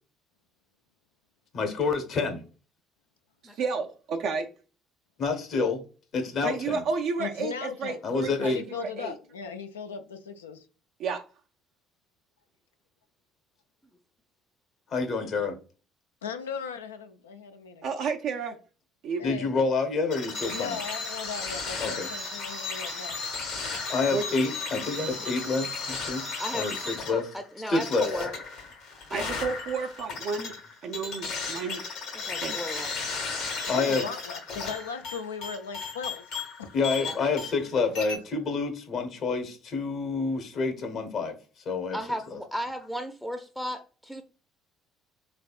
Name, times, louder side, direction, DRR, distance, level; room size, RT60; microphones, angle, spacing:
voice 1, 1.5-2.4 5.2-5.8 6.1-6.8 8.0-8.6 14.9-15.6 19.2-20.8 21.8-22.1 23.9-27.2 27.7-28.1 33.7-34.1 36.7-41.3 41.6-42.0, left 4 dB, 55° left, 1.0 m, -28 dB
voice 2, 3.5-4.5 6.4-9.1 11.0-11.2 17.8-18.6 19.0-19.2 24.1-24.3 29.1-30.5 30.8-31.9 32.4-32.6, right 5 dB, 65° right, 0.4 m, -31 dB
voice 3, 7.2-8.0 8.4-10.6 16.2-17.9 19.2-19.5 20.5-23.2 33.7-36.3 36.6-36.8, left 6 dB, 90° left, 0.4 m, -37 dB
sound 1, 20.1-37.7 38.0-38.2, left 4 dB, 70° left, 1.3 m, -35 dB
voice 4, 27.1-28.3 29.1-29.2 32.1-32.9 37.0-37.1 41.9-44.2, equal, ahead, 0.5 m, -35 dB
3.4 x 3.3 x 2.4 m
hypercardioid pair, 55°, 0 cm